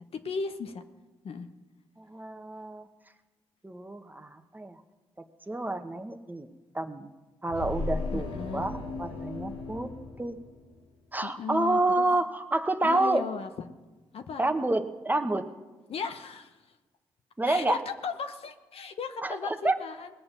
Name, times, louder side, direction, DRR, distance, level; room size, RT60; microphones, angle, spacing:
voice 1, 0.1-0.8 1.2-1.5 8.1-8.7 11.2-12.0 12.8-13.7 14.1-14.4 15.9-16.6 17.5-20.1, left 5 dB, 60° left, 7 dB, 1.0 m, -36 dB
voice 2, 2.0-2.9 3.6-4.8 5.5-6.5 6.7-7.1 7.4-9.9 10.2-10.4 11.1-13.3 14.4-15.5 17.4-17.8 19.2-19.8, right 2 dB, 15° right, 7 dB, 1.2 m, -29 dB
sound 1, 7.5-10.9, left 3 dB, 85° left, 2.5 m, -36 dB
19.5 x 6.9 x 6.8 m, 1.2 s
supercardioid pair, 55°, 11 cm